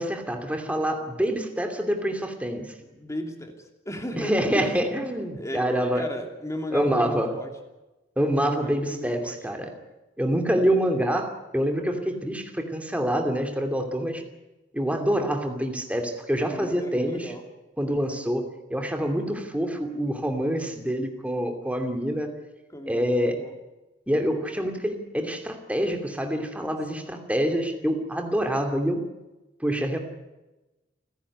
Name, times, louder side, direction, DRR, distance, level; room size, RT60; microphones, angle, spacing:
voice 1, 0.0-2.7 4.2-6.1 6.7-7.4 8.2-9.7 10.2-14.2 14.7-17.3 17.8-22.3 22.9-23.4 24.1-29.0 29.6-30.0, equal, 5° right, 4 dB, 2.6 m, -26 dB
voice 2, 2.8-4.8 5.3-7.5 8.4-9.4 16.5-17.4 22.7-23.6 26.9-27.2, equal, 15° left, 4 dB, 2.9 m, -36 dB
30.0 x 10.5 x 9.8 m, 1.0 s
head